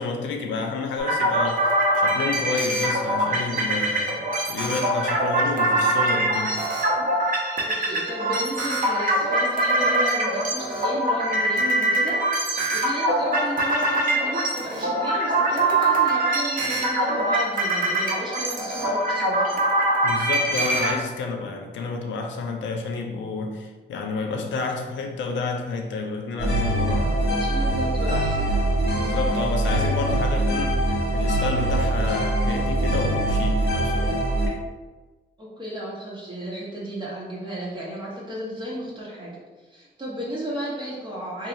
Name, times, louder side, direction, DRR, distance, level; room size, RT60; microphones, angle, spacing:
voice 1, 0.0-6.7 20.0-27.1 29.0-34.2, left 4 dB, 85° left, 3 dB, 0.5 m, -30 dB
sound 1, 1.0-20.9, right 1 dB, 50° right, 0.9 m, -23 dB
voice 2, 7.7-19.6 27.3-28.5 35.4-39.3 39.7-41.5, equal, 25° right, -7 dB, 1.1 m, -33 dB
sound 2, 26.4-34.5, right 1 dB, 70° left, 1.1 m, -23 dB
2.8 x 2.3 x 3.9 m, 1.3 s
cardioid pair, 65°, 19 cm